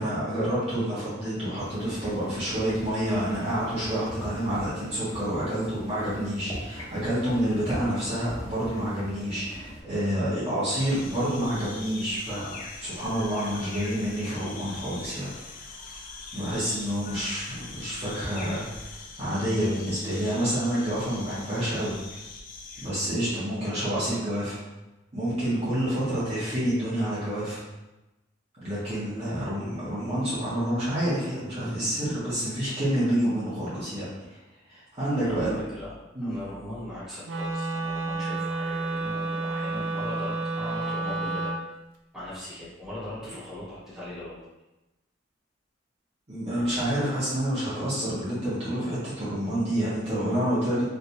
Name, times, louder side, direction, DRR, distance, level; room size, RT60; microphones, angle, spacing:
voice 1, 0.0-15.8 16.3-22.2 22.8-24.6 25.1-27.6 28.6-34.4 34.7-35.6 36.1-36.4 46.3-50.8, equal, 35° right, -11 dB, 1.1 m, -28 dB
sound 1, 1.6-9.8, equal, 20° left, 0.9 m, -41 dB
sound 2, 10.8-22.9, left 3 dB, 45° left, 0.4 m, -42 dB
voice 2, 35.2-35.9 36.2-41.5 42.1-44.4 46.5-47.1, left 1 dB, 5° right, -11 dB, 1.5 m, -40 dB
Wind instrument woodwind instrument, 37.2-41.6, right 2 dB, 75° right, 0.5 m, -30 dB
3.3 x 2.9 x 2.7 m, 1.0 s
head